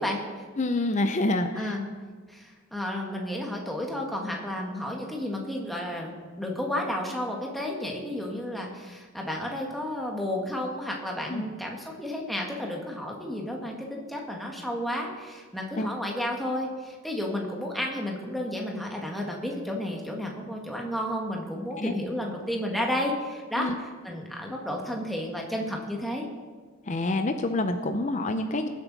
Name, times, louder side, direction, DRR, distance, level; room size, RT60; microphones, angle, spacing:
voice 1, 0.0-0.4 1.5-1.9 2.3-26.2, left 1 dB, ahead, -1 dB, 1.6 m, -32 dB
voice 2, 0.6-1.7 11.3-11.5 15.8-15.9 21.7-21.9 23.6-23.7 26.9-28.7, left 2 dB, 35° left, 7 dB, 0.6 m, -27 dB
21.5 x 8.1 x 4.1 m, 1.5 s
head